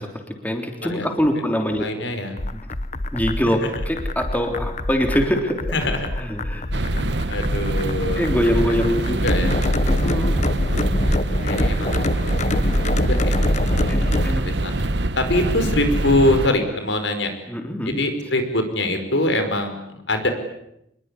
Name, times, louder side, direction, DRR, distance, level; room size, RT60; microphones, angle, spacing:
voice 1, 0.0-1.9 2.5-2.6 3.1-5.8 6.2-6.6 8.2-9.2 9.9-10.4 13.9-14.4 17.5-18.0, equal, 10° left, 4 dB, 3.4 m, -24 dB
voice 2, 1.8-2.3 3.6-3.7 5.7-6.1 6.8-8.2 8.7-9.5 11.4-12.1 12.4-12.8 13.1-13.4 13.8-14.8 15.2-17.3 17.8-20.3, left 1 dB, 80° left, 7 dB, 5.1 m, -24 dB
sound 1, 2.4-14.3, left 1 dB, 40° left, 1.0 m, -25 dB
sound 2, 6.7-16.5, right 2 dB, 70° right, 1.1 m, -24 dB
26.5 x 22.0 x 9.9 m, 0.79 s
head